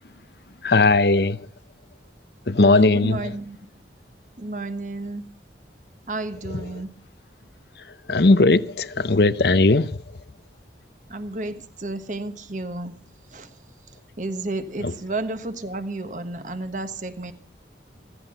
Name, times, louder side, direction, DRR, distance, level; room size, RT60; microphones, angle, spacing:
voice 1, 0.6-1.4 2.5-3.2 8.1-10.0 14.8-14.9, left 3 dB, 65° left, 0.8 m, -18 dB
voice 2, 2.6-3.7 4.4-5.3 6.1-6.9 11.1-13.0 13.3-13.5 14.2-17.3, right 2 dB, 45° right, 1.3 m, -32 dB
15.5 x 15.0 x 5.5 m
head